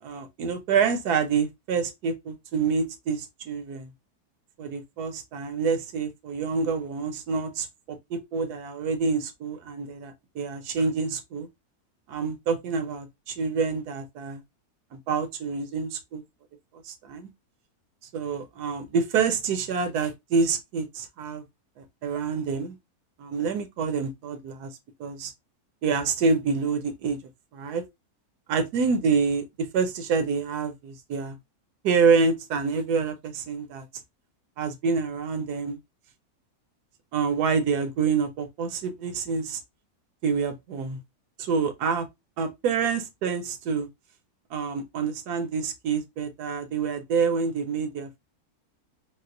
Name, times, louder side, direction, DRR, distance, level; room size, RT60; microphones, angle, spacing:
voice 1, 0.0-3.9 4.6-11.5 12.1-14.4 14.9-16.2 16.8-17.3 18.1-21.4 21.8-22.8 23.2-24.7 25.0-25.3 25.8-27.2 27.5-27.8 28.5-31.4 31.8-33.9 34.6-35.8 37.1-39.6 40.2-41.0 41.4-42.1 42.4-43.9 44.5-48.2, right 5 dB, 85° right, 1.2 m, -27 dB
4.2 x 2.1 x 2.4 m
omnidirectional pair, 1.6 m